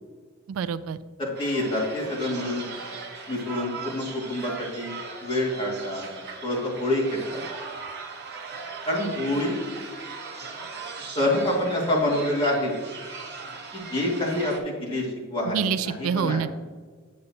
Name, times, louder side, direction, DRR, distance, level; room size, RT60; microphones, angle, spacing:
voice 1, 0.5-1.0 15.5-16.6, right 7 dB, 70° right, 14 dB, 0.3 m, -27 dB
voice 2, 1.2-2.6 3.3-6.1 6.4-7.4 8.9-9.6 11.2-12.7 13.7-16.4, left 1 dB, 25° left, -5 dB, 2.1 m, -27 dB
sound 1, 1.3-14.6, right 4 dB, 50° right, 1.1 m, -39 dB
8.5 x 7.7 x 2.8 m, 1.5 s
head